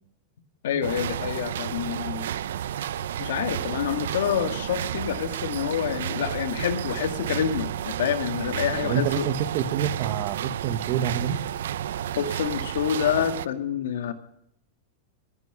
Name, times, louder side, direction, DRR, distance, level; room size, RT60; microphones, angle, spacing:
voice 1, 0.6-2.3 3.2-9.3 12.2-14.1, left 9 dB, 80° left, 9 dB, 1.9 m, -27 dB
sound 1, 0.8-13.5, right 10 dB, 85° right, 0.6 m, -31 dB
voice 2, 8.8-11.4, right 9 dB, 40° right, 14 dB, 1.1 m, -27 dB
19.5 x 9.8 x 6.7 m, 0.74 s
supercardioid pair, 160°, 0 cm